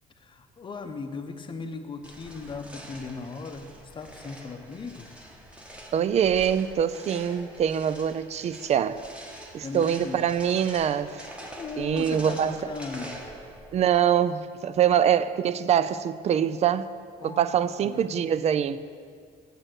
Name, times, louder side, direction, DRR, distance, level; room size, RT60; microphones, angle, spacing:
voice 1, 0.2-5.1 9.6-10.2 11.6-13.2 17.2-18.1, left 4 dB, 30° left, 0.7 m, -38 dB
sound 1, 2.0-13.9, equal, 5° right, 1.1 m, -45 dB
voice 2, 5.9-9.0 9.5-11.3 11.8-12.7 13.7-16.9 17.2-18.8, right 9 dB, 40° right, 0.4 m, -24 dB
6.6 x 6.5 x 7.7 m
cardioid pair, 110°, 17 cm